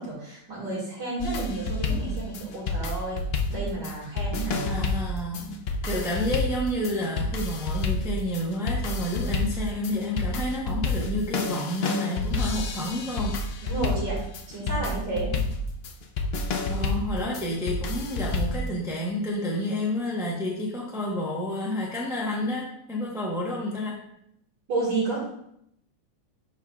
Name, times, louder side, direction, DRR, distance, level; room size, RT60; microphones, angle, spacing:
voice 1, 0.0-3.2 3.5-4.7 13.6-14.2 14.5-15.3 24.7-25.2, right 2 dB, 70° right, -6 dB, 2.7 m, -31 dB
sound 1, 1.2-18.7, left 3 dB, 80° left, 0.5 m, -29 dB
voice 2, 4.7-13.7 16.7-24.0, left 1 dB, ahead, -4 dB, 0.7 m, -30 dB
11.0 x 4.6 x 2.4 m, 0.74 s
omnidirectional pair, 1.9 m